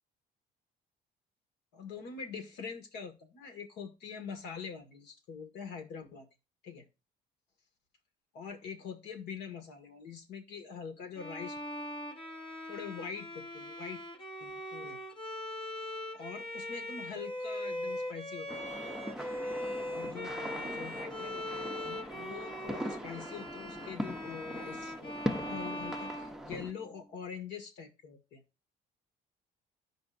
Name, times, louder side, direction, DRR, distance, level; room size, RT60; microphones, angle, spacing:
voice 1, 1.7-6.3 6.6-6.8 8.3-11.6 12.7-14.0 14.4-15.0 16.1-18.7 19.8-28.4, left 6 dB, 85° left, 1.9 m, -44 dB
Bowed string instrument, 11.2-27.0, left 1 dB, 30° left, 0.9 m, -41 dB
sound 1, 18.5-26.7, equal, ahead, 0.7 m, -41 dB
15.0 x 5.2 x 2.6 m
cardioid pair, 110°, 17 cm